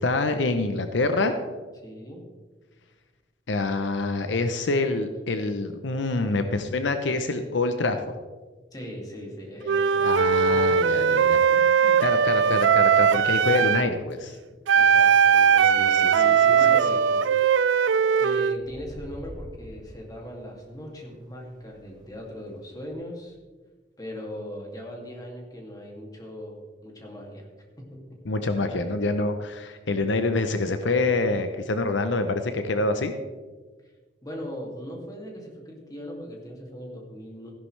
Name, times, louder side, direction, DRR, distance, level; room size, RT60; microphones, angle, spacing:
voice 1, 0.0-1.3 3.5-8.0 10.0-11.4 12.0-14.4 15.8-16.8 28.3-33.1, left 3 dB, 75° left, 8 dB, 0.7 m, -26 dB
voice 2, 1.8-2.3 8.7-10.6 10.9-12.0 12.3-12.7 14.7-17.3 18.2-23.4 24.0-27.5 27.8-28.2 28.5-29.1 34.2-37.5, equal, 20° left, -1 dB, 2.5 m, -39 dB
Wind instrument woodwind instrument, 9.6-13.9 14.7-18.6, right 7 dB, 80° right, 0.4 m, -20 dB
sound 1, 17.0-17.4 18.5-22.9, equal, 20° right, 1.4 m, -47 dB
15.5 x 11.0 x 3.3 m, 1.4 s
head